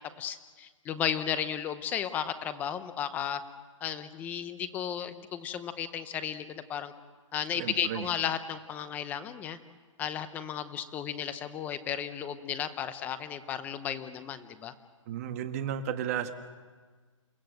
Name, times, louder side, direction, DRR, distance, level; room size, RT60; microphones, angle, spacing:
voice 1, 0.2-3.4 3.8-6.9 7.3-9.6 10.0-14.7, left 9 dB, 10° left, 12 dB, 0.7 m, -34 dB
voice 2, 7.6-8.1 15.1-16.3, right 9 dB, 30° right, 7 dB, 1.4 m, -33 dB
30.0 x 16.5 x 7.8 m, 1.4 s
hypercardioid pair, 165°, 17 cm